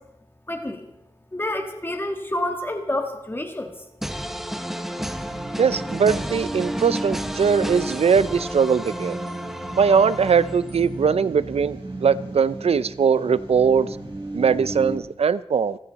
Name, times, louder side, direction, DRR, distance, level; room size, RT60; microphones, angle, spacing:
voice 1, 0.5-0.8 1.3-3.7, left 1 dB, 20° left, 5 dB, 1.6 m, -28 dB
sound 1, 4.0-11.0, equal, 5° right, 1.1 m, -32 dB
sound 2, 5.2-15.0, right 2 dB, 55° right, 5.2 m, -35 dB
voice 2, 5.6-9.2 9.8-13.9 14.3-15.8, right 6 dB, 80° right, 16 dB, 0.5 m, -20 dB
28.5 x 10.0 x 4.1 m, 0.88 s
wide cardioid pair, 100°, 10 cm